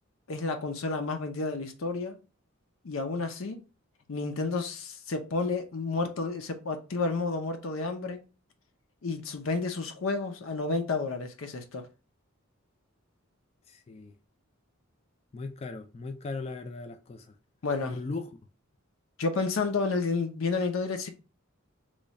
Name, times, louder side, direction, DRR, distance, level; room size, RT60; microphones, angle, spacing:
voice 1, 0.3-2.2 2.8-3.6 4.1-8.2 9.0-11.9 17.6-18.0 19.2-21.1, left 3 dB, 70° left, 0.6 m, -31 dB
voice 2, 13.7-14.1 15.3-17.4 17.9-18.3, left 3 dB, 30° left, 0.3 m, -38 dB
3.1 x 2.3 x 4.0 m
head